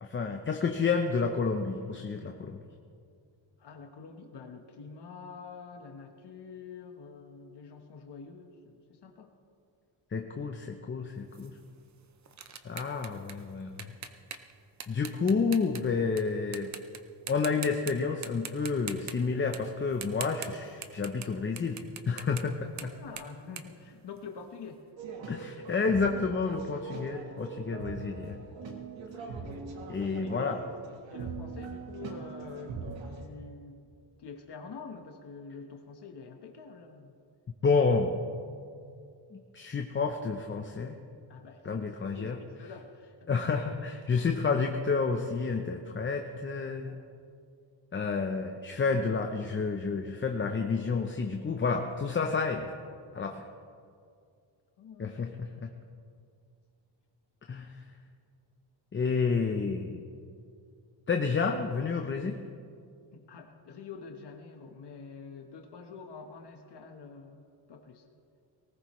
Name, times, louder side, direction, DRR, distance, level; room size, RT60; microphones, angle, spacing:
voice 1, 0.0-2.6 10.1-11.5 12.6-13.9 14.9-16.7 17.3-21.8 22.1-22.9 25.3-28.4 29.9-30.6 37.6-38.1 39.3-40.9 41.6-42.4 43.3-47.0 47.9-52.7 53.1-53.4 55.0-55.7 57.5-57.8 58.9-60.0 61.1-62.4, left 4 dB, 25° left, 4 dB, 0.6 m, -30 dB
voice 2, 3.6-9.3 22.8-24.8 30.0-30.6 31.1-33.9 34.2-37.1 41.3-41.9 42.1-43.5 54.8-55.3 63.1-68.0, left 5 dB, 60° left, 4 dB, 1.2 m, -46 dB
sound 1, 11.3-16.2 16.5-17.0 17.3-17.9 18.2-21.3 21.6-24.6, right 7 dB, 35° right, 0.7 m, -43 dB
sound 2, 25.0-33.2, right 4 dB, 75° right, 1.6 m, -41 dB
19.0 x 18.5 x 3.1 m, 2.3 s
wide cardioid pair, 160°, 46 cm